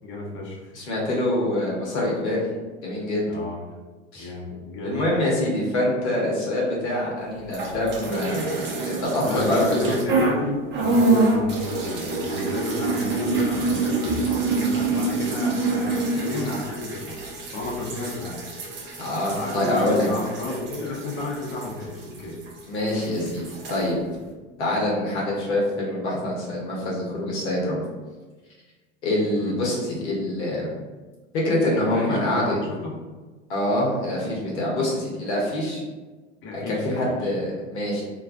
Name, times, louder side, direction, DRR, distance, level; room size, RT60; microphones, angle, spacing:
voice 1, 0.0-0.7 3.3-3.6 4.2-5.0 9.2-17.2 17.5-18.4 19.4-22.4 29.4-29.5 31.9-33.0 36.4-37.1, left 2 dB, 35° left, -3 dB, 0.8 m, -31 dB
voice 2, 0.7-2.4 2.8-3.3 4.1-4.3 4.8-9.9 19.0-20.1 22.7-23.4 23.7-24.0 24.6-27.8 29.0-30.7 31.3-32.6 33.5-35.8 36.7-38.0, left 1 dB, 70° left, -4 dB, 0.9 m, -25 dB
sound 1, 7.5-10.4 10.7-22.6 22.9-23.8, right 3 dB, 30° right, 0.5 m, -26 dB
2.3 x 2.2 x 2.5 m, 1.3 s
figure-of-eight pair, 75°, 35 cm